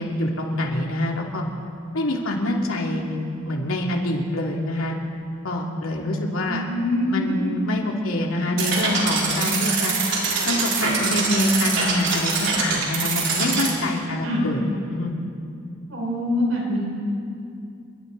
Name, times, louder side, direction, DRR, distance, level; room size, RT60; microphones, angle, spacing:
voice 1, 0.0-1.4 1.9-5.0 5.4-6.6 7.1-10.0 10.4-14.6 14.9-15.1, left 1 dB, 80° left, 0 dB, 2.8 m, -25 dB
voice 2, 6.4-7.6 14.2-14.5 15.9-16.8, left 1 dB, 80° right, -3 dB, 6.3 m, -24 dB
sound 1, 8.6-13.7, right 4 dB, 60° right, 4.1 m, -24 dB
28.5 x 23.0 x 4.1 m, 2.5 s
head